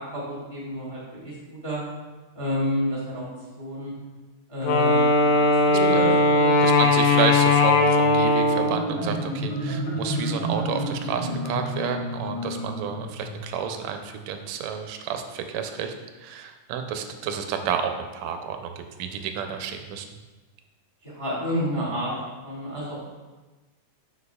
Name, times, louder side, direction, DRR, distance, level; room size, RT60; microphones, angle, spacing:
voice 1, 0.0-1.8 2.3-3.2 3.6-3.9 4.5-6.5 21.0-22.1 22.4-23.0, equal, 20° left, -7 dB, 0.9 m, -30 dB
Wind instrument woodwind instrument, 4.6-9.0, left 2 dB, 80° left, 1.9 m, -19 dB
voice 2, 5.9-6.2 6.6-20.1, right 7 dB, 80° right, 6 dB, 1.7 m, -30 dB
Marimba xylophone, 8.3-13.8, equal, 60° left, 2.4 m, -30 dB
8.1 x 5.2 x 2.2 m, 1.2 s
omnidirectional pair, 3.5 m